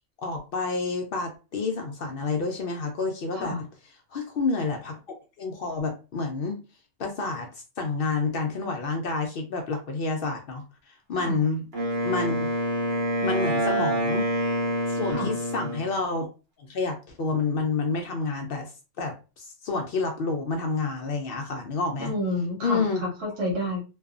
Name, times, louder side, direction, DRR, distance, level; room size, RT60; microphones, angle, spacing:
voice 1, 0.2-3.6 4.1-5.0 5.4-6.6 7.0-7.5 7.8-11.6 12.0-12.5 13.2-14.3 14.9-16.3 16.6-18.7 19.0-22.1 22.6-23.0, left 4 dB, 60° left, 3 dB, 0.6 m, -29 dB
Wind instrument woodwind instrument, 11.7-15.9, equal, 55° right, 1.2 m, -26 dB
voice 2, 22.0-23.8, left 1 dB, 85° right, 0 dB, 1.3 m, -29 dB
2.6 x 2.3 x 2.4 m, 0.32 s
omnidirectional pair, 1.3 m